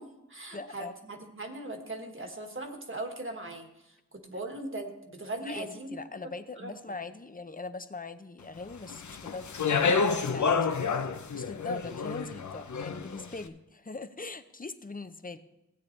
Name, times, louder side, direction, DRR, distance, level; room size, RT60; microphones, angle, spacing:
voice 1, 0.0-6.0 6.6-6.7, right 2 dB, 45° right, 4 dB, 1.5 m, -39 dB
voice 2, 0.5-0.9 5.4-10.7 11.3-15.4, left 3 dB, 30° left, 11 dB, 0.6 m, -41 dB
Speech, 8.9-13.2, left 5 dB, 75° left, 0.7 m, -29 dB
16.0 x 8.5 x 3.2 m, 0.94 s
wide cardioid pair, 60°, 30 cm